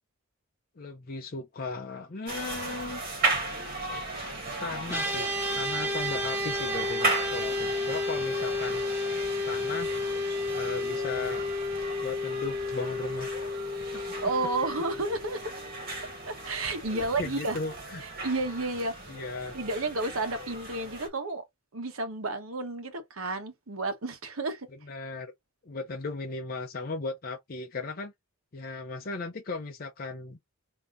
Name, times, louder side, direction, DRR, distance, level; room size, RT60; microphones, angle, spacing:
voice 1, 0.8-3.0 4.6-8.8 9.4-10.0 10.5-11.4 12.0-13.5 13.9-14.0 16.9-18.0 19.1-19.6 24.8-25.3 25.6-28.1 28.5-30.4, left 3 dB, 45° left, 0.5 m, -37 dB
sound 1, 2.3-21.1, right 2 dB, 45° right, 1.7 m, -36 dB
sound 2, 4.9-16.4, left 2 dB, 10° right, 1.6 m, -32 dB
voice 2, 14.2-15.4 16.3-17.6 18.0-18.9 19.5-21.4 21.7-24.7, right 2 dB, 80° right, 1.0 m, -31 dB
3.7 x 2.8 x 3.8 m
head